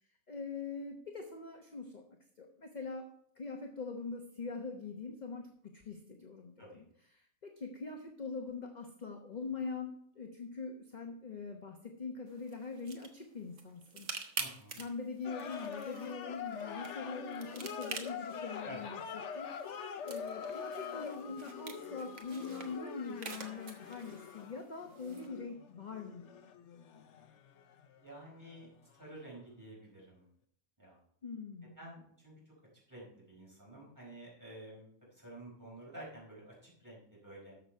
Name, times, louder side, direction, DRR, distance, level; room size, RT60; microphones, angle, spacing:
voice 1, 0.3-2.0 2.4-3.0 3.4-6.6 7.1-14.3 14.8-19.0 19.3-26.2 31.2-31.8, left 4 dB, 35° left, 2 dB, 1.0 m, -43 dB
sound 1, 12.3-25.3, right 5 dB, 60° right, 1.5 m, -48 dB
voice 2, 14.4-14.8 18.6-18.9 28.0-28.7 28.9-30.2 30.8-31.0 31.8-32.5 32.9-37.6, right 1 dB, 15° right, -4 dB, 4.9 m, -51 dB
sound 2, 15.2-28.7 28.9-29.1, left 7 dB, 60° left, 1.1 m, -44 dB
13.0 x 6.6 x 4.4 m, 0.66 s
omnidirectional pair, 1.4 m